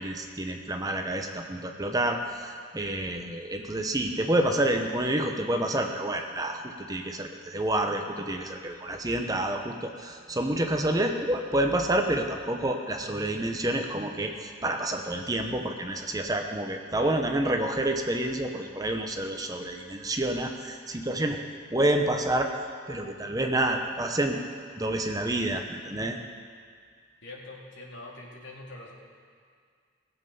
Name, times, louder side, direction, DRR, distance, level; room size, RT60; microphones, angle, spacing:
voice 1, 0.0-21.4 21.7-22.5 22.9-24.4 24.8-26.2, right 1 dB, 20° right, 4 dB, 0.8 m, -28 dB
voice 2, 27.2-28.9, left 2 dB, 85° left, -3 dB, 2.5 m, -43 dB
18.5 x 7.7 x 5.5 m, 2.1 s
head